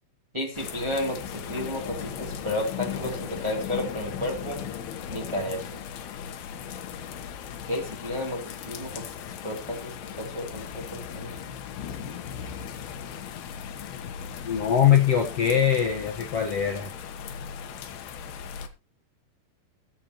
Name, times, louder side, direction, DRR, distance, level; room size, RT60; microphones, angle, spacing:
voice 1, 0.3-4.6 5.1-5.7 7.7-11.3, left 1 dB, 10° right, 0 dB, 1.8 m, -32 dB
sound 1, 0.5-18.7, left 8 dB, 70° left, 2.9 m, -37 dB
voice 2, 14.4-16.9, left 9 dB, 85° left, 1 dB, 1.3 m, -22 dB
22.0 x 7.4 x 3.0 m, 0.28 s
omnidirectional pair, 5.3 m